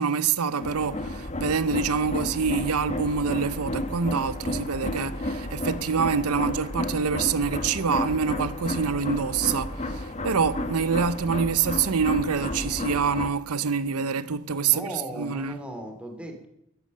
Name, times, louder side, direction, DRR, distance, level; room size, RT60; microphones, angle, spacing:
voice 1, 0.0-15.6, right 6 dB, 80° right, 0.7 m, -26 dB
sound 1, 0.6-13.3, left 1 dB, 30° left, 1.3 m, -32 dB
voice 2, 14.6-16.5, right 1 dB, 5° right, 2.7 m, -37 dB
13.0 x 11.0 x 7.5 m
head